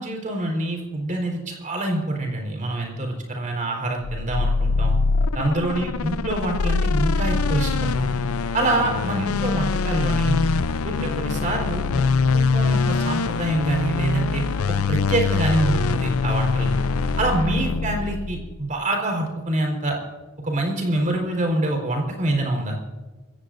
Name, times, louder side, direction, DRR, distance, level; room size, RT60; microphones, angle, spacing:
voice 1, 0.0-5.0 5.3-8.1 8.5-10.4 10.8-11.8 12.3-14.4 14.7-16.7 17.2-20.0 20.4-22.8, right 1 dB, 35° right, 1 dB, 4.2 m, -25 dB
sound 1, 4.0-18.6, left 4 dB, 80° left, 0.5 m, -23 dB
27.0 x 15.5 x 2.6 m, 1.3 s
head